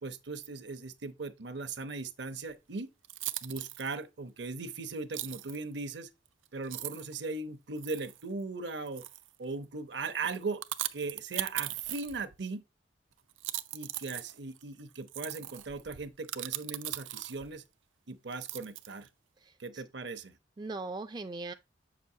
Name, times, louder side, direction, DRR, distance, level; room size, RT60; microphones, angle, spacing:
voice 1, 0.0-2.9 3.4-6.1 6.5-9.0 9.4-10.6 10.9-12.6 13.7-17.6 18.1-19.1 19.6-20.4, right 3 dB, 65° right, 0.8 m, -38 dB
sound 1, 2.5-2.6 3.0-3.9 5.1-5.6 6.3-6.4 6.6-7.1 7.8-8.2 8.9-9.4 10.3-12.4 13.3-17.6 18.3-19.1, right 14 dB, 85° right, 0.5 m, -39 dB
voice 2, 19.4-19.8 20.6-21.5, right 3 dB, 20° right, 0.3 m, -40 dB
7.7 x 6.0 x 2.7 m
head